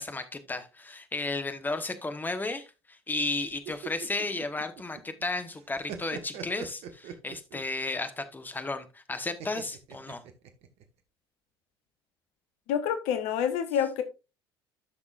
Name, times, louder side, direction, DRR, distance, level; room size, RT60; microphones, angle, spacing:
voice 1, 0.0-10.2, left 2 dB, 15° left, 9 dB, 1.2 m, -34 dB
sound 1, 3.5-5.2 5.5-7.7 9.4-10.8, right 7 dB, 55° right, 1.2 m, -42 dB
voice 2, 12.7-14.0, left 9 dB, 60° left, 10 dB, 1.0 m, -27 dB
13.0 x 6.1 x 2.5 m, 0.28 s
figure-of-eight pair, 60°, 13 cm